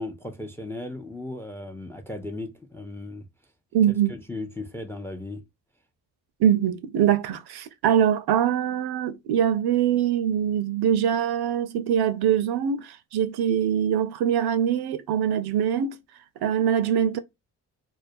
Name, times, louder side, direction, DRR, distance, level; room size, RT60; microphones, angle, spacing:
voice 1, 0.0-3.3 4.1-5.4, left 2 dB, 5° left, 0.4 m, -36 dB
voice 2, 3.7-4.1 6.4-16.0 16.4-17.2, right 9 dB, 60° right, 0.5 m, -23 dB
2.3 x 2.2 x 2.5 m
supercardioid pair, 55°, 45 cm